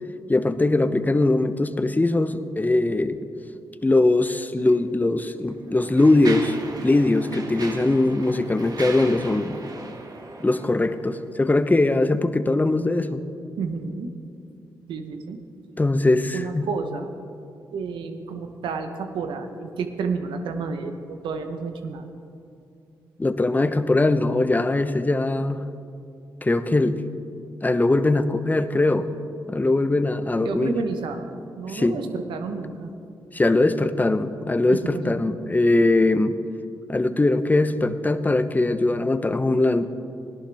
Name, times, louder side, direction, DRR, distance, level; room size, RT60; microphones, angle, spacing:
voice 1, 0.3-3.2 3.8-6.6 6.8-9.6 10.4-13.2 15.8-16.7 23.2-25.6 26.4-27.0 27.6-29.1 29.5-30.7 31.7-32.0 33.3-36.4 36.9-39.8, left 2 dB, 20° left, 11 dB, 0.8 m, -21 dB
Mechanisms, 4.6-4.7 5.5-11.2, right 3 dB, 50° right, 1.5 m, -38 dB
voice 2, 13.6-14.1 14.9-15.4 16.3-17.1 17.7-22.1 30.4-32.9 34.7-35.1, right 4 dB, 80° right, 7 dB, 1.0 m, -30 dB
18.0 x 11.5 x 3.5 m, 2.5 s
supercardioid pair, 50°, 8 cm